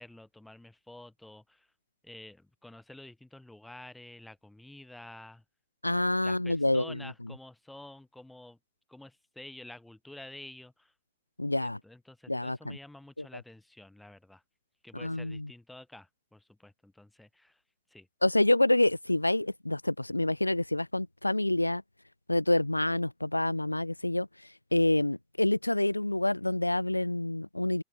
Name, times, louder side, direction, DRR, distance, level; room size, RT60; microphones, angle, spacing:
voice 1, 0.0-1.7 2.0-5.4 6.2-8.6 8.9-10.9 11.5-14.4 14.8-17.6 17.9-18.1, left 1 dB, 5° left, 4.5 m, -50 dB
voice 2, 5.8-7.0 11.4-11.8 12.3-12.8 13.2-13.3 14.9-15.5 18.2-21.8 22.3-24.3 24.7-27.8, left 1 dB, 85° left, 1.4 m, -27 dB
figure-of-eight pair, 90°, 0 cm